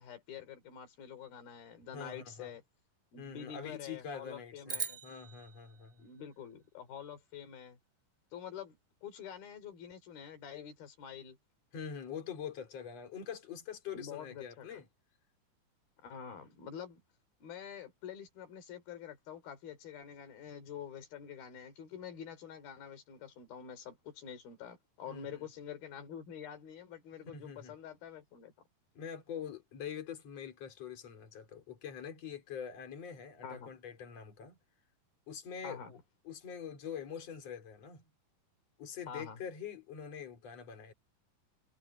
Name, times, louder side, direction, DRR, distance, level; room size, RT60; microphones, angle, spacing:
voice 1, 0.0-2.6 3.1-5.0 6.0-7.8 8.3-8.8 9.0-11.4 13.9-14.8 16.0-17.0 17.4-28.5 33.4-33.7 35.6-35.9 39.1-39.4, left 8 dB, 80° left, 4.9 m, -47 dB
voice 2, 1.9-2.5 3.2-6.1 11.7-14.9 25.1-25.5 27.3-27.8 29.0-34.6 35.3-36.0 36.2-38.0 38.8-40.9, left 7 dB, 45° left, 4.6 m, -44 dB
sound 1, 4.7-7.1, right 5 dB, 30° right, 1.4 m, -43 dB
omnidirectional pair, 4.2 m